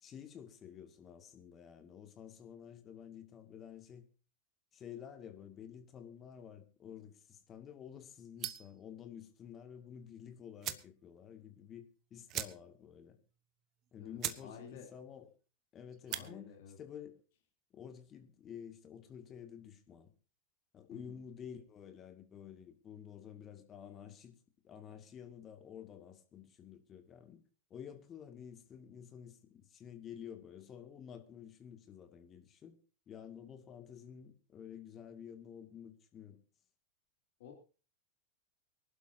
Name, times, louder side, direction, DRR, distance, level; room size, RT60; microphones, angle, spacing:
voice 1, 0.0-4.0 4.7-13.2 13.9-15.3 15.7-16.5 16.8-17.2 17.7-20.1 20.7-24.4 24.6-27.4 27.7-32.8 33.1-36.4, left 8 dB, 30° left, 2.3 m, -51 dB
sound 1, 8.4-8.8 10.1-10.2 10.6-10.9 11.3-11.4 11.6-11.8 12.3-12.9 13.2-13.3 13.8-13.9 14.2-14.5 14.8-15.2 15.9-16.3, right 12 dB, 40° right, 1.1 m, -40 dB
voice 2, 14.0-14.9 16.1-16.8 20.9-21.2 37.4-37.5, left 7 dB, 60° left, 3.3 m, -52 dB
24.0 x 11.5 x 2.8 m
figure-of-eight pair, 90°, 0 cm